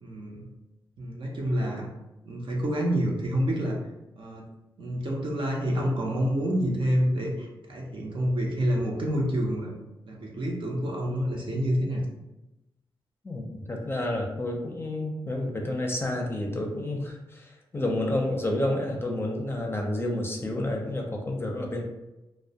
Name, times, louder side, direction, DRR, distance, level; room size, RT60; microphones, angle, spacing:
voice 1, 0.0-0.5 1.0-1.9 2.3-3.8 4.2-4.5 4.8-9.7 10.1-12.0, equal, 60° right, -1 dB, 0.6 m, -28 dB
voice 2, 13.2-21.8, left 1 dB, 25° left, 1 dB, 0.5 m, -30 dB
2.1 x 2.1 x 2.7 m, 0.98 s
cardioid pair, 65°, 10 cm